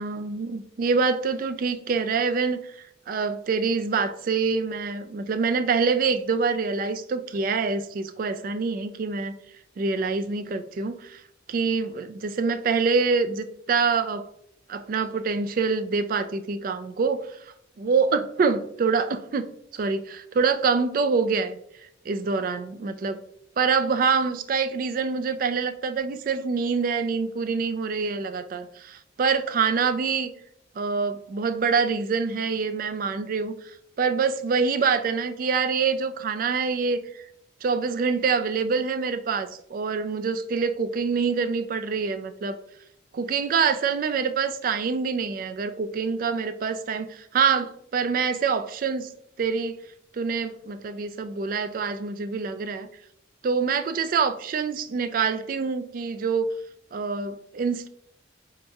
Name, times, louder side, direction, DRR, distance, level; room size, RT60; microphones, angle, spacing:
voice 1, 0.0-2.8 3.1-9.4 9.8-11.2 11.5-14.3 14.7-17.3 17.8-21.6 22.1-23.2 23.6-30.3 30.8-33.5 34.0-37.2 37.6-42.6 43.1-49.1 49.4-49.8 50.1-52.9 53.4-56.5 56.9-57.9, right 5 dB, 50° right, 10 dB, 0.3 m, -25 dB
5.1 x 2.8 x 2.3 m, 0.71 s
head